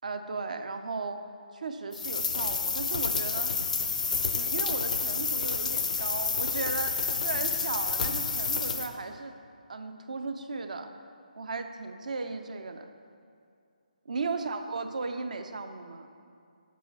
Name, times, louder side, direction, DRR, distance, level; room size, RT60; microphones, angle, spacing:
voice 1, 0.0-1.2 1.5-3.5 4.3-9.3 9.7-10.9 11.4-12.9 14.1-16.1, right 4 dB, 60° right, 7 dB, 0.5 m, -36 dB
sound 1, 1.9-8.9, left 5 dB, 55° left, 0.5 m, -29 dB
8.1 x 6.9 x 3.1 m, 2.4 s
figure-of-eight pair, 150°, 5 cm